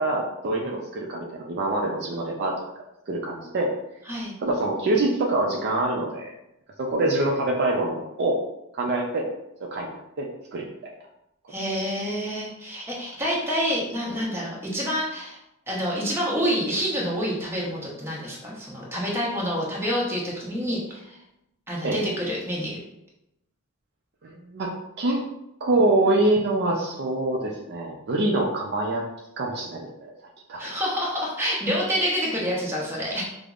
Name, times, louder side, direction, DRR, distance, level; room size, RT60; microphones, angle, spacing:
voice 1, 0.0-2.5 3.1-3.7 4.4-6.3 6.8-8.4 8.7-9.2 9.6-10.3 10.5-10.6 21.8-22.1 24.2-24.7 25.0-25.2 25.6-29.0 29.4-30.1 30.5-30.7, right 2 dB, 50° right, -1 dB, 0.4 m, -25 dB
voice 2, 11.5-15.4 15.7-21.2 21.7-22.8 30.6-33.2, equal, 10° right, -5 dB, 0.8 m, -27 dB
5.0 x 2.0 x 2.4 m, 0.85 s
head